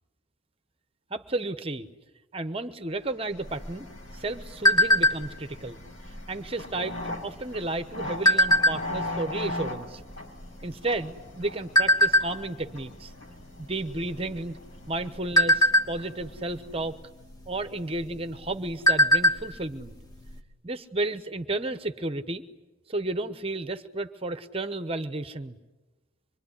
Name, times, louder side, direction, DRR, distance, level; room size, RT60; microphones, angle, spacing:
voice 1, 1.1-1.9 2.3-5.8 6.3-7.0 7.2-10.0 10.6-13.1 13.6-14.6 14.9-17.0 17.5-19.9 20.6-22.4 22.9-25.6, right 2 dB, 30° right, 10 dB, 1.0 m, -32 dB
sound 1, 3.1-17.0, left 1 dB, 75° left, 6.2 m, -40 dB
sound 2, 3.5-5.5 5.9-6.2 6.5-6.9 7.6-9.1 9.7-9.8 10.0-11.3 11.8-12.3 12.8-13.0 13.3-13.5 14.0-14.5 15.0-16.4 17.4-17.6 18.0-18.1 18.5-19.5 19.8-19.9 20.3-20.4, equal, 20° left, 2.3 m, -21 dB
25.0 x 23.0 x 9.9 m, 1.1 s
head